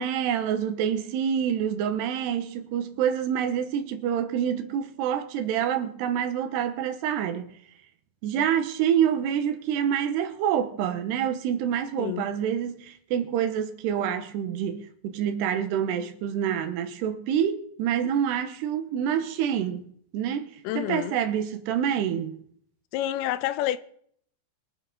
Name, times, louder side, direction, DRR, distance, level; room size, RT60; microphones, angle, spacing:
voice 1, 0.0-7.6 8.2-19.9 20.1-22.4, right 9 dB, 80° right, 3.0 m, -27 dB
voice 2, 20.6-21.2 22.9-23.8, left 13 dB, 80° left, 2.3 m, -28 dB
23.5 x 8.7 x 4.2 m
omnidirectional pair, 5.0 m